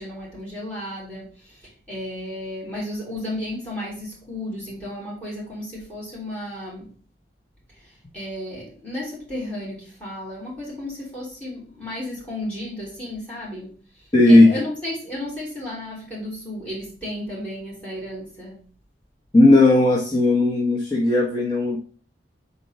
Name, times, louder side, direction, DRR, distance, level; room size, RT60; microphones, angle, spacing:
voice 1, 0.0-6.9 7.8-18.7, left 1 dB, 5° left, -7 dB, 3.5 m, -34 dB
voice 2, 14.1-14.6 19.3-21.8, left 2 dB, 25° left, -5 dB, 1.1 m, -15 dB
4.5 x 4.2 x 5.3 m, 0.42 s
head